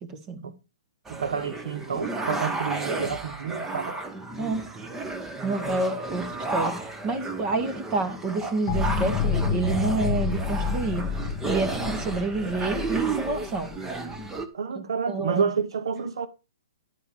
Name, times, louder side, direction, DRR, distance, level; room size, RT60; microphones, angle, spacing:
voice 1, 0.0-0.5 4.4-4.7 5.4-11.0 11.5-13.7 14.8-15.4, right 3 dB, 25° right, 1.9 m, -29 dB
sound 1, 1.1-14.5, right 3 dB, 10° right, 1.1 m, -33 dB
voice 2, 1.1-4.0 14.5-16.3, right 6 dB, 75° right, 0.9 m, -29 dB
sound 2, 8.7-14.4, left 5 dB, 25° left, 2.9 m, -29 dB
11.5 x 4.7 x 7.2 m
hypercardioid pair, 145°, 3 cm